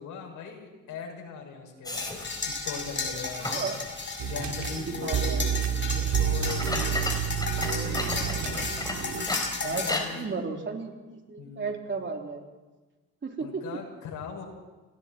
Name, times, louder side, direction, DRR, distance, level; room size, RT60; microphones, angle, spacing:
voice 1, 0.0-3.5 4.2-5.6 5.9-7.0 7.4-8.8 9.6-10.3 11.4-11.9 13.4-14.4, left 6 dB, 80° left, 0 dB, 7.1 m, -40 dB
sound 1, 1.8-3.8 4.3-4.4 5.4-5.5 6.4-10.2, left 2 dB, 15° left, 4.5 m, -35 dB
sound 2, 2.0-10.0, left 4 dB, 40° left, 7.2 m, -34 dB
voice 2, 3.4-3.8 4.7-5.4 8.3-9.1 9.6-12.4 13.2-13.6, right 4 dB, 40° right, 2 dB, 3.7 m, -35 dB
sound 3, 4.2-9.2, right 9 dB, 75° right, 3.0 m, -29 dB
29.0 x 19.5 x 4.6 m, 1.2 s
cardioid pair, 90°, 30 cm